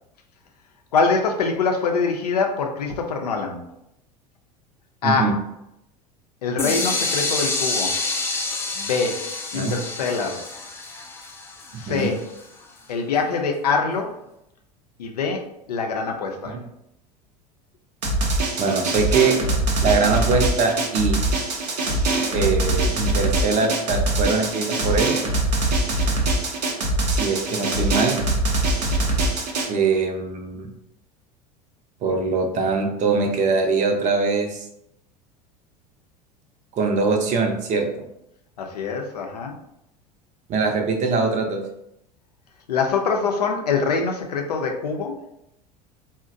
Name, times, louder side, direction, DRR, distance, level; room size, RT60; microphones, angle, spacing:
voice 1, 0.9-3.6 5.0-5.3 6.4-7.9 8.8-9.2 9.5-10.5 11.8-12.2 12.9-14.1 15.0-16.6 38.6-39.6 42.7-45.2, left 4 dB, 75° left, 3 dB, 0.5 m, -24 dB
voice 2, 5.0-5.3 9.5-9.8 11.7-12.1 16.4-16.6 18.6-19.4 19.8-21.2 22.3-25.2 27.1-28.2 29.7-30.7 32.0-34.7 36.7-37.9 40.5-41.6, right 4 dB, 35° right, 3 dB, 0.6 m, -22 dB
sound 1, 6.6-12.4, left 3 dB, 10° left, 0.4 m, -27 dB
Drum, 18.0-29.7, right 2 dB, 75° right, 0.7 m, -23 dB
3.8 x 2.1 x 2.5 m, 0.80 s
figure-of-eight pair, 75°, 21 cm